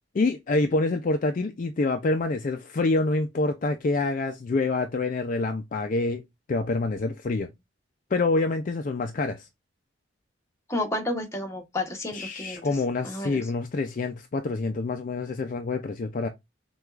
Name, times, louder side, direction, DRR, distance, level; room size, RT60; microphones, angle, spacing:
voice 1, 0.1-6.2 6.5-7.5 8.1-9.5 12.1-16.3, left 3 dB, 45° left, 0.4 m, -26 dB
voice 2, 10.7-12.8 13.0-13.5, left 1 dB, 15° left, 0.9 m, -31 dB
6.0 x 2.3 x 2.3 m
head